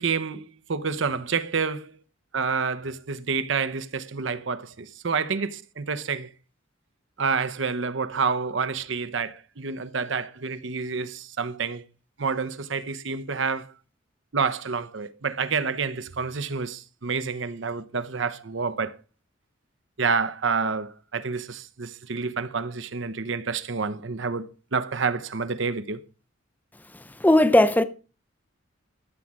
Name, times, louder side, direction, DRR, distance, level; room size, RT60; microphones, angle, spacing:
voice 1, 0.0-2.0 2.3-6.3 7.2-11.8 12.2-13.7 14.3-18.9 20.0-26.0, right 5 dB, 65° right, 0.8 m, -28 dB
voice 2, 27.2-27.8, left 1 dB, 10° left, 0.7 m, -17 dB
13.5 x 4.9 x 7.4 m
head